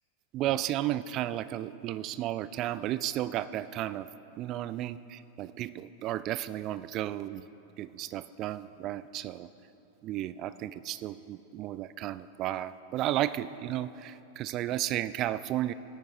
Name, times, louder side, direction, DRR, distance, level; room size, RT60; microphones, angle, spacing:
voice 1, 0.3-4.1 4.4-7.5 7.8-9.5 10.0-15.7, right 13 dB, 35° right, 15 dB, 0.3 m, -33 dB
16.5 x 8.9 x 3.4 m, 3.0 s
figure-of-eight pair, 90°, 0 cm